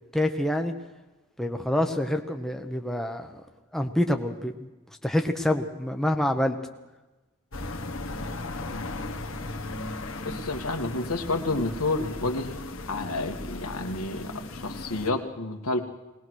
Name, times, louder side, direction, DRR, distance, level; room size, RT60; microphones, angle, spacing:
voice 1, 0.1-0.7 1.4-3.4 3.7-4.7 5.0-6.6, left 1 dB, ahead, 4 dB, 1.1 m, -26 dB
sound 1, 7.5-15.1, left 2 dB, 65° left, 1.7 m, -36 dB
voice 2, 8.7-9.2 10.2-12.5 12.9-15.9, left 2 dB, 85° left, 6 dB, 2.0 m, -30 dB
21.0 x 19.5 x 6.4 m, 1.1 s
head